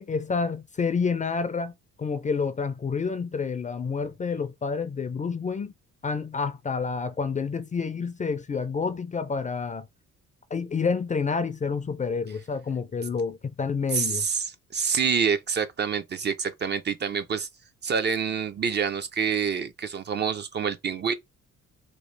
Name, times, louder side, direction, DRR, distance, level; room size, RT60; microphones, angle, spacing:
voice 1, 0.0-1.7 2.0-5.7 6.0-9.9 10.5-14.3, left 5 dB, 25° left, 0.4 m, -29 dB
voice 2, 13.9-17.5 17.8-21.1, right 6 dB, 35° right, 0.4 m, -27 dB
3.0 x 2.4 x 3.1 m
cardioid pair, 90°, 30 cm